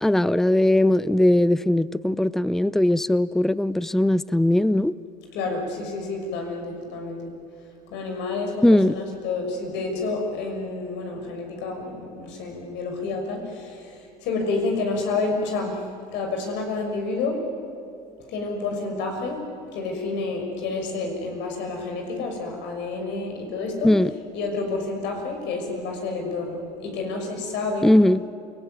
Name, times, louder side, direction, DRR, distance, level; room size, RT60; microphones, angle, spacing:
voice 1, 0.0-4.9 8.6-8.9 23.8-24.1 27.8-28.2, left 1 dB, ahead, 18 dB, 0.6 m, -19 dB
voice 2, 5.3-7.3 7.9-17.5 18.3-23.9 24.3-27.9, left 3 dB, 70° left, 3 dB, 6.4 m, -29 dB
28.0 x 19.5 x 9.5 m, 2.6 s
supercardioid pair, 85°, 19 cm